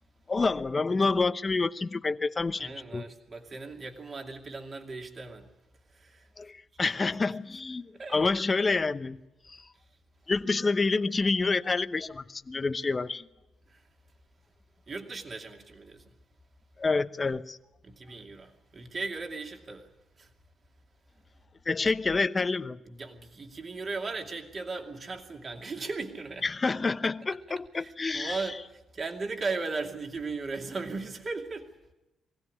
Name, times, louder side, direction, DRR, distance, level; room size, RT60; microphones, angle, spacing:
voice 1, 0.3-3.1 6.4-9.2 9.5-9.6 10.3-13.2 16.8-17.6 21.7-22.8 26.4-28.4, left 3 dB, 30° left, 0.9 m, -28 dB
voice 2, 2.6-5.5 5.9-6.3 7.9-8.3 13.7-13.8 14.9-16.1 17.8-19.9 20.2-20.3 22.9-26.5 27.3-27.4 27.8-31.7, right 3 dB, 40° right, 2.6 m, -37 dB
23.5 x 16.5 x 9.7 m
cardioid pair, 90°, 0 cm